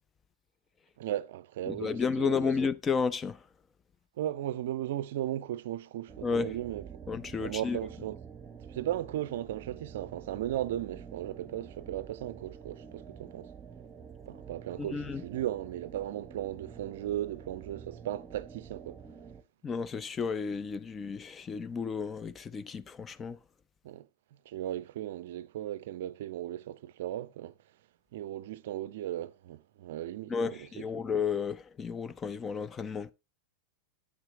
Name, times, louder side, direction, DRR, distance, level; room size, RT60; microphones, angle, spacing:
voice 1, 1.0-2.5 4.2-6.9 7.4-8.2 8.7-13.5 14.3-19.0 23.8-24.1 24.5-27.5 28.1-31.0, right 12 dB, 55° right, 0.5 m, -36 dB
voice 2, 1.7-3.4 6.2-6.5 7.1-7.8 14.9-15.2 19.6-23.4 30.3-33.1, left 5 dB, 20° left, 0.5 m, -32 dB
sound 1, 6.1-19.4, right 6 dB, 20° right, 0.8 m, -48 dB
8.7 x 8.6 x 2.9 m
figure-of-eight pair, 90°, 0 cm